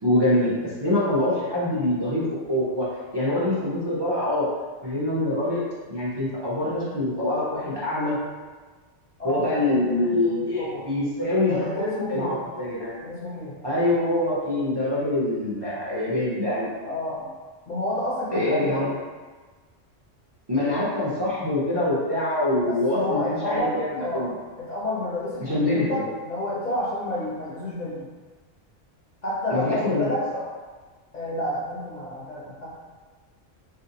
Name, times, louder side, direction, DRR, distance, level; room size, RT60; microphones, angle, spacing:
voice 1, 0.0-2.9 3.1-4.5 4.8-5.6 5.9-8.2 9.2-13.0 13.6-16.7 18.3-18.9 20.5-24.3 25.4-26.0 29.5-30.1, left 1 dB, 30° right, -8 dB, 0.5 m, -25 dB
voice 2, 9.2-10.9 11.4-12.4 13.0-13.6 16.8-17.3 17.6-18.7 22.7-28.1 29.2-30.3 31.1-32.7, left 1 dB, 40° left, -8 dB, 0.7 m, -30 dB
3.7 x 2.5 x 2.8 m, 1.4 s
omnidirectional pair, 1.3 m